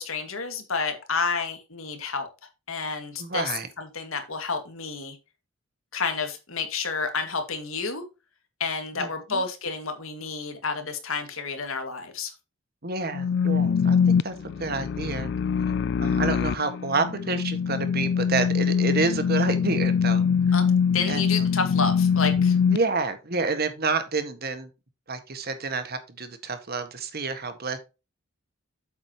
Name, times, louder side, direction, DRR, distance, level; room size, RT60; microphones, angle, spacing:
voice 1, 0.0-2.3 2.7-3.5 3.8-5.2 5.9-8.0 8.6-12.3 20.5-20.6 20.9-22.6, left 4 dB, 75° left, 2.2 m, -30 dB
voice 2, 3.2-3.7 9.0-9.4 12.8-15.3 16.0-20.2 21.1-21.4 22.7-24.7 25.1-27.8, right 3 dB, 45° right, 1.7 m, -29 dB
sound 1, 13.1-22.8, left 6 dB, 55° left, 0.3 m, -23 dB
8.2 x 8.2 x 3.0 m
head